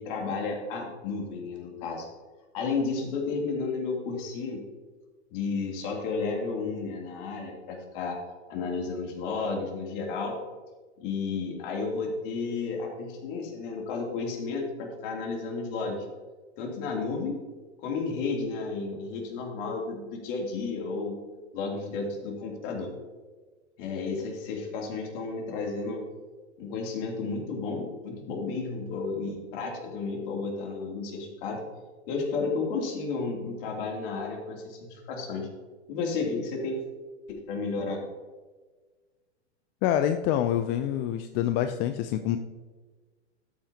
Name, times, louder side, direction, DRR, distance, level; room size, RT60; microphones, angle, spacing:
voice 1, 0.0-2.1 2.5-4.6 5.3-8.2 8.5-10.4 11.0-16.1 16.6-17.4 17.8-21.2 21.5-22.9 23.8-26.0 26.6-31.6 32.1-35.5 35.9-36.8 37.3-38.0, left 4 dB, 50° left, 0 dB, 3.0 m, -32 dB
voice 2, 39.8-42.4, left 11 dB, 30° left, 8 dB, 0.5 m, -26 dB
12.5 x 8.8 x 2.9 m, 1.3 s
hypercardioid pair, 115°, 35 cm